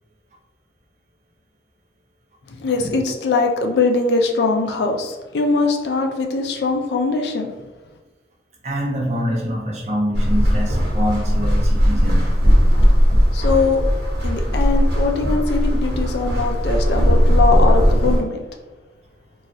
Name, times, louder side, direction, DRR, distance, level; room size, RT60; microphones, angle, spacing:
voice 1, 2.5-7.5 13.3-13.8 14.2-18.4, left 3 dB, 70° left, 3 dB, 0.4 m, -21 dB
voice 2, 8.6-12.3, equal, 35° right, -2 dB, 0.6 m, -25 dB
sound 1, 10.1-18.2, equal, 65° right, 1.0 m, -17 dB
3.1 x 2.3 x 2.6 m, 1.2 s
head